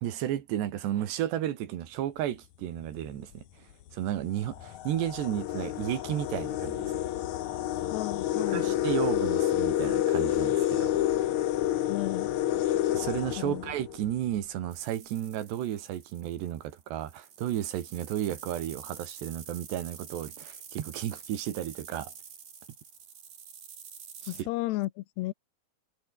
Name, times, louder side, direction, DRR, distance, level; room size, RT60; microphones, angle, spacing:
voice 1, 0.0-6.9 8.5-11.0 12.9-22.1 24.2-24.5, right 11 dB, 80° right, 4.0 m, -33 dB
sound 1, 2.8-3.1 3.9-4.0 4.4-14.2, left 13 dB, 70° left, 1.8 m, -29 dB
voice 2, 7.9-8.7 11.9-12.4 13.4-13.6 24.3-25.3, left 18 dB, 85° left, 2.9 m, -33 dB
sound 2, 14.7-24.4, right 7 dB, 50° right, 4.4 m, -48 dB
omnidirectional pair, 4.9 m